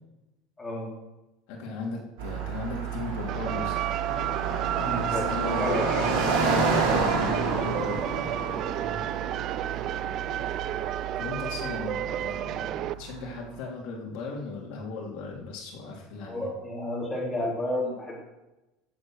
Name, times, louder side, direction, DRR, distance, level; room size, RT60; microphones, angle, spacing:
voice 1, 0.6-0.9 4.8-6.2 8.8-9.0 16.2-18.2, left 1 dB, 10° left, -4 dB, 3.3 m, -32 dB
voice 2, 1.5-3.8 4.8-8.1 11.2-16.5, left 4 dB, 60° left, -1 dB, 3.2 m, -37 dB
Car passing by, 2.2-13.3, right 4 dB, 85° right, 4.5 m, -30 dB
sound 1, 3.3-12.9, right 12 dB, 35° right, 0.3 m, -32 dB
15.5 x 7.5 x 6.4 m, 0.99 s
cardioid pair, 170°, 0 cm